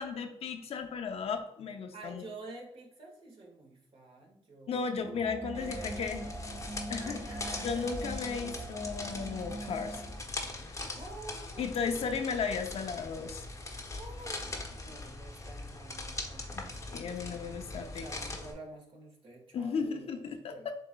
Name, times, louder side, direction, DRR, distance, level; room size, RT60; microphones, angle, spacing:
voice 1, 0.0-2.2 4.7-6.2 6.9-7.2 7.6-10.0 11.6-13.4 16.5-18.0 19.5-20.8, left 5 dB, 60° left, 6 dB, 0.6 m, -35 dB
voice 2, 1.9-4.8 5.1-5.2 5.5-6.3 7.0-7.9 10.9-12.2 14.0-20.2 20.5-20.7, right 2 dB, 50° right, 0 dB, 1.8 m, -49 dB
sound 1, 5.0-10.2, right 2 dB, 30° right, 0.9 m, -42 dB
sound 2, 5.5-18.5, left 2 dB, 25° left, 1.0 m, -41 dB
7.4 x 3.0 x 2.3 m, 0.75 s
cardioid pair, 80°, 12 cm